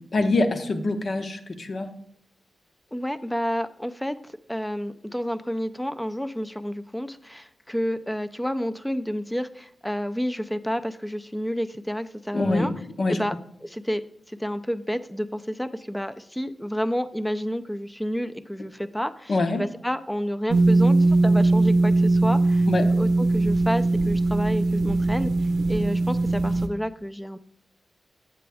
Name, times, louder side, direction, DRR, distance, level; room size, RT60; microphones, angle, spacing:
voice 1, 0.0-1.9 12.3-13.3 19.3-19.6 22.7-22.9, left 2 dB, 55° left, 7 dB, 0.8 m, -25 dB
voice 2, 2.9-12.7 13.1-13.3 13.6-14.0 14.3-22.7 22.9-25.3 25.7-27.4, equal, 5° left, 11 dB, 0.4 m, -30 dB
sound 1, 20.5-26.7, right 2 dB, 85° right, 0.6 m, -20 dB
7.8 x 7.4 x 3.4 m, 0.67 s
cardioid pair, 65°, 0 cm